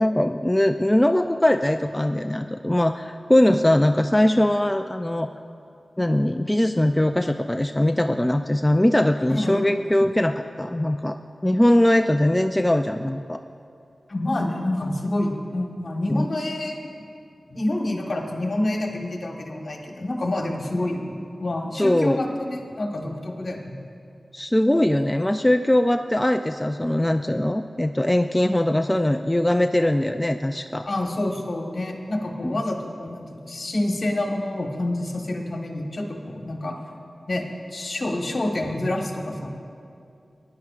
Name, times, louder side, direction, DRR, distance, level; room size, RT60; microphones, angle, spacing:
voice 1, 0.0-5.3 6.0-11.2 11.4-13.4 16.1-16.3 21.8-22.2 24.3-30.9 32.4-32.6, left 1 dB, 15° left, 6 dB, 0.3 m, -21 dB
voice 2, 9.3-9.7 14.1-17.1 17.5-23.8 30.8-36.7 37.3-39.5, left 1 dB, 55° left, 1 dB, 1.4 m, -28 dB
19.0 x 10.5 x 2.5 m, 2.5 s
wide cardioid pair, 65°, 0 cm